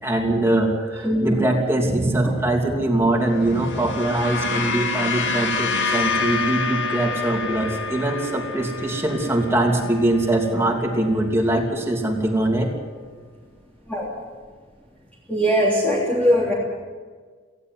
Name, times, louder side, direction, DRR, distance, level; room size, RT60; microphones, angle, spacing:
voice 1, 0.0-12.7, right 1 dB, 15° right, 0 dB, 2.9 m, -22 dB
voice 2, 2.0-2.3 13.9-14.1 15.3-16.5, equal, 10° left, -5 dB, 3.2 m, -20 dB
sound 1, 3.3-11.8, left 4 dB, 80° left, 2.2 m, -28 dB
19.0 x 16.0 x 9.6 m, 1.5 s
head